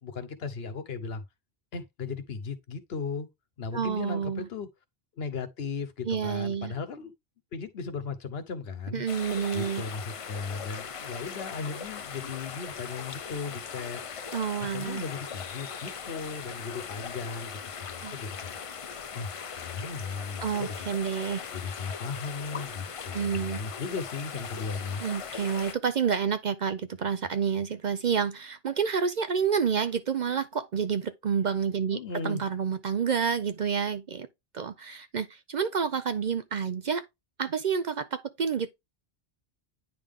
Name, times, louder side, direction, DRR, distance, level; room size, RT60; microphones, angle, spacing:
voice 1, 0.0-1.2 1.7-3.3 3.6-4.7 5.2-7.1 7.5-9.0 9.5-14.0 14.6-18.6 19.1-20.9 21.5-25.0 31.9-32.4, left 5 dB, 70° left, 1.1 m, -36 dB
voice 2, 3.7-4.5 6.1-6.7 8.9-9.8 14.3-15.0 18.0-18.1 20.4-21.4 23.1-23.6 25.0-32.0 32.2-34.3 34.5-37.0 37.4-38.7, right 6 dB, 50° right, 0.6 m, -29 dB
sound 1, 9.1-25.7, left 6 dB, 45° left, 0.5 m, -39 dB
9.5 x 3.5 x 3.6 m
omnidirectional pair, 1.1 m